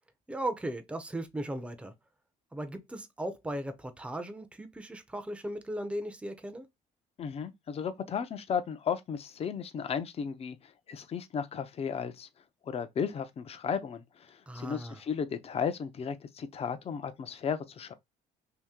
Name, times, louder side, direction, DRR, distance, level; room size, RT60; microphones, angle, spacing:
voice 1, 0.3-1.9 2.5-6.7 14.5-15.0, right 1 dB, 5° right, 0.6 m, -37 dB
voice 2, 7.2-12.3 12.7-17.9, left 7 dB, 35° left, 0.6 m, -34 dB
2.8 x 2.7 x 3.6 m
cardioid pair, 110°, 17 cm